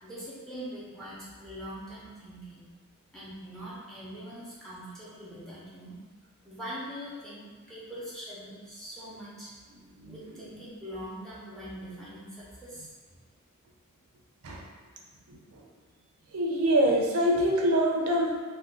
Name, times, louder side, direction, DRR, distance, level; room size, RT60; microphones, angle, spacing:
voice 1, 0.0-2.6 3.1-5.9 6.4-9.5 10.1-12.9, equal, ahead, -9 dB, 0.7 m, -42 dB
voice 2, 10.0-10.6 14.4-14.6 15.3-15.7 16.3-18.4, equal, 85° right, -1 dB, 0.5 m, -26 dB
2.5 x 2.4 x 3.6 m, 1.5 s
head